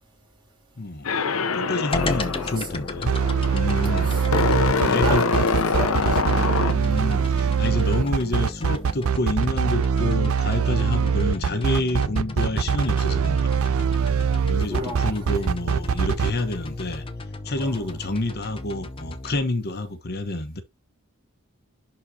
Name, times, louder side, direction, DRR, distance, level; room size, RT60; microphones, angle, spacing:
voice 1, 0.8-1.1 1.5-3.1 3.5-5.2 6.7-13.7 14.4-17.0 17.4-20.6, left 2 dB, 45° left, 1.0 m, -28 dB
sound 1, 1.0-7.2, left 4 dB, 70° left, 0.8 m, -25 dB
sound 2, 1.9-19.4, left 2 dB, 25° left, 0.8 m, -35 dB
voice 2, 2.0-2.7 4.0-6.4 7.0-7.2 7.8-8.2 14.7-15.5 17.6-17.9, equal, 20° right, 3.5 m, -35 dB
sound 3, 3.1-16.3, right 6 dB, 70° right, 0.5 m, -22 dB
11.0 x 4.1 x 2.8 m
head